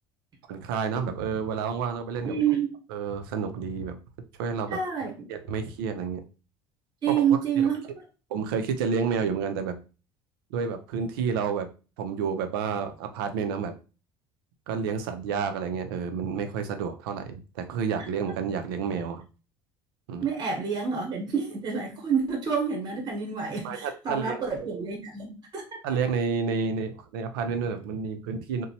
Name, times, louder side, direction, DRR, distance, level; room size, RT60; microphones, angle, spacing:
voice 1, 0.5-2.4 2.9-4.0 4.4-4.8 5.3-6.2 7.1-7.3 7.6-7.7 8.3-9.8 10.5-11.7 12.0-13.7 14.7-19.2 20.1-20.3 23.6-24.8 25.8-28.7, right 6 dB, 85° right, 0.5 m, -30 dB
voice 2, 2.2-2.7 4.7-5.3 7.0-7.8 20.2-25.6, right 7 dB, 40° right, 1.0 m, -28 dB
2.9 x 2.1 x 2.7 m
supercardioid pair, 80°, 11 cm